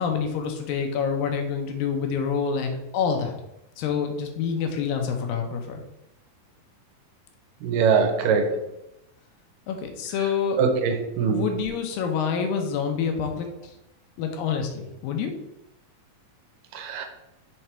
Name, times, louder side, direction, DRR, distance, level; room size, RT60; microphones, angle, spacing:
voice 1, 0.0-3.3 3.8-5.8 9.7-10.6 11.3-13.7 14.2-15.3, left 6 dB, 90° left, 4 dB, 2.6 m, -27 dB
voice 2, 7.6-8.5 10.6-11.4 16.8-17.1, right 6 dB, 80° right, 6 dB, 2.3 m, -22 dB
6.4 x 3.4 x 4.3 m, 0.88 s
omnidirectional pair, 4.0 m